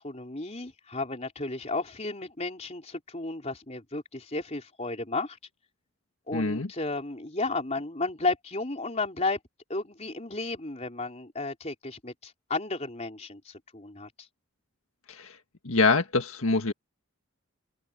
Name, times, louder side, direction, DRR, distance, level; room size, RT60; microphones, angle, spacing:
voice 1, 0.0-5.4 6.3-9.4 9.7-14.1, left 3 dB, 30° left, 3.9 m, -33 dB
voice 2, 6.3-6.7 15.1-15.4 15.6-16.7, left 3 dB, 80° left, 1.7 m, -25 dB
head